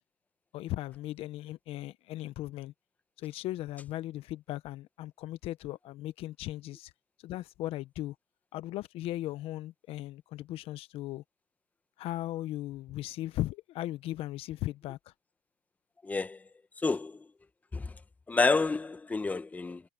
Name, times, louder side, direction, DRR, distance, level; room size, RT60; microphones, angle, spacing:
voice 1, 0.5-2.7 3.2-6.9 7.2-8.1 8.5-11.2 12.0-15.0, left 15 dB, 50° left, 1.1 m, -37 dB
voice 2, 16.0-16.4 16.8-17.2 17.7-17.9 18.3-19.8, left 3 dB, 10° left, 1.3 m, -29 dB
supercardioid pair, 105°, 12 cm